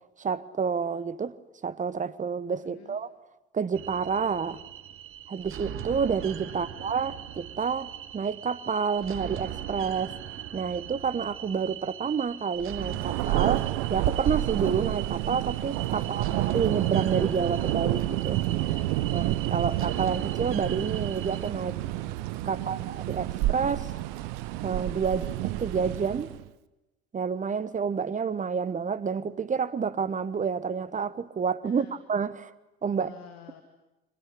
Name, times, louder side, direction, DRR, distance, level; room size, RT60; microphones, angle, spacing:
voice 1, 0.2-1.3 1.6-3.1 3.5-4.6 5.3-10.1 10.5-13.6 13.9-18.4 19.1-22.1 22.4-23.9 24.6-26.3 27.1-32.5 32.8-33.1, right 6 dB, 25° right, 1.1 m, -29 dB
voice 2, 2.6-3.0 6.5-6.8 16.0-16.4 18.5-19.0 22.4-22.9 31.6-32.0 32.9-33.6, left 9 dB, 60° left, 2.2 m, -49 dB
sound 1, 3.7-21.5, right 11 dB, 45° right, 1.3 m, -39 dB
Thunder, 12.8-26.5, right 16 dB, 60° right, 0.8 m, -29 dB
23.5 x 18.5 x 9.9 m
figure-of-eight pair, 60°, 30 cm